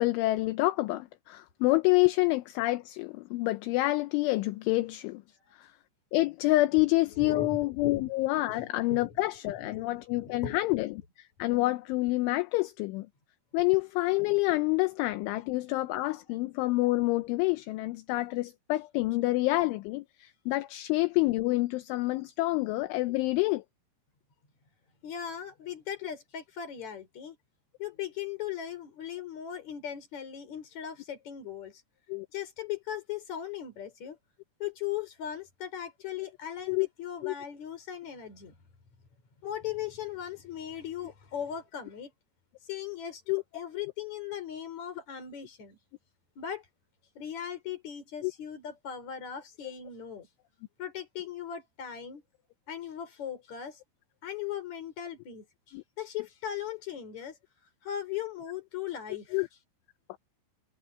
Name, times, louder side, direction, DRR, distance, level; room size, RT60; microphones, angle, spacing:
voice 1, 0.0-5.2 5.6-5.7 6.1-11.0 11.4-13.1 13.5-23.6 32.1-32.3 36.7-36.9 37.2-37.3 43.3-43.4 48.2-48.3 55.7-55.8 59.3-59.5, left 20 dB, 80° left, 3.0 m, -27 dB
voice 2, 7.2-8.1 8.5-9.1 9.6-10.6 25.0-27.4 27.8-31.8 32.3-34.2 34.6-38.5 39.4-42.1 42.7-45.8 46.4-46.7 47.1-50.3 50.8-52.2 52.7-53.8 54.2-57.4 57.8-59.4, left 9 dB, 35° left, 4.7 m, -38 dB
omnidirectional pair, 5.9 m